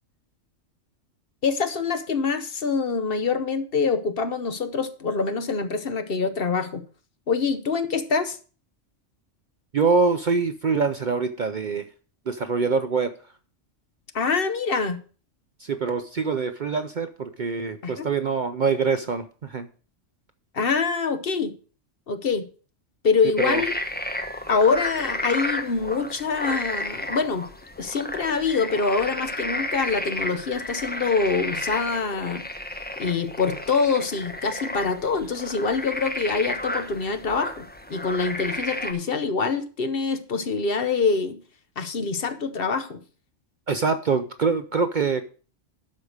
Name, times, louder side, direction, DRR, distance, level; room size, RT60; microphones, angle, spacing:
voice 1, 1.4-6.8 7.3-8.4 14.1-15.0 17.8-18.1 20.5-21.5 22.1-22.4 23.0-23.7 24.5-27.5 27.8-32.4 33.0-41.4 41.8-43.0, left 5 dB, 50° left, 10 dB, 1.0 m, -25 dB
voice 2, 9.7-11.8 12.3-13.1 15.6-19.7 23.2-23.6 43.7-45.2, right 5 dB, 50° right, 9 dB, 0.6 m, -24 dB
sound 1, 23.4-38.9, left 1 dB, 10° left, 0.9 m, -32 dB
12.0 x 4.9 x 6.4 m, 0.39 s
omnidirectional pair, 1.3 m